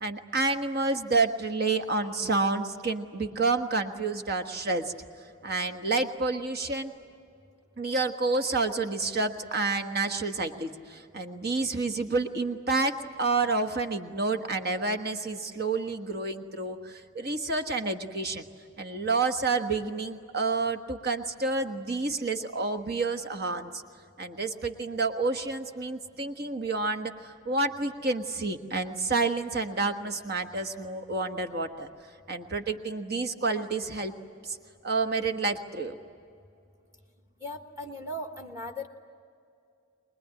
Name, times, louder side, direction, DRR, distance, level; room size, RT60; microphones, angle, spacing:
voice 1, 0.0-4.9 5.4-6.9 7.8-12.9 13.2-18.4 18.8-23.8 24.2-31.9 32.3-34.1 34.4-34.6 34.8-36.0, right 3 dB, 45° right, 7 dB, 1.4 m, -29 dB
voice 2, 37.4-38.9, left 1 dB, 15° right, 4 dB, 1.3 m, -37 dB
24.0 x 21.0 x 9.7 m, 2.4 s
head